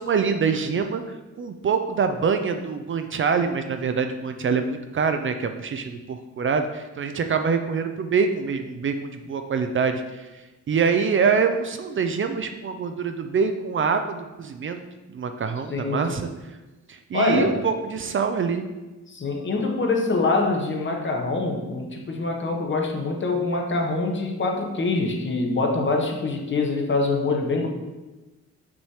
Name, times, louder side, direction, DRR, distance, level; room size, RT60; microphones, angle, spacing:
voice 1, 0.0-14.8 15.1-16.3 16.9-18.7, right 5 dB, 40° right, 7 dB, 0.5 m, -25 dB
voice 2, 15.7-16.1 17.1-17.6 19.1-27.7, left 3 dB, 40° left, 2 dB, 1.1 m, -24 dB
6.0 x 3.2 x 5.6 m, 1.1 s
cardioid pair, 100°, 30 cm